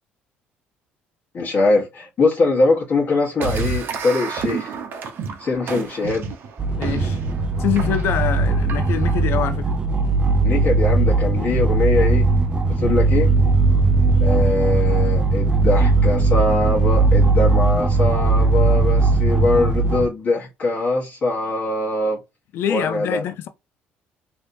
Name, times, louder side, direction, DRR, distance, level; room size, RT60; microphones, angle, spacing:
voice 1, 1.3-4.8 5.4-6.3 10.4-12.3 12.8-13.3 14.2-22.2 22.7-23.2, left 3 dB, 45° left, 1.3 m, -22 dB
sound 1, 3.4-9.2, right 5 dB, 55° right, 0.7 m, -30 dB
sound 2, 6.6-20.1, right 3 dB, 20° right, 0.5 m, -18 dB
voice 2, 6.8-7.2 7.6-9.7 22.5-23.5, left 10 dB, 65° left, 0.4 m, -25 dB
3.4 x 2.8 x 2.7 m
cardioid pair, 105°, 4 cm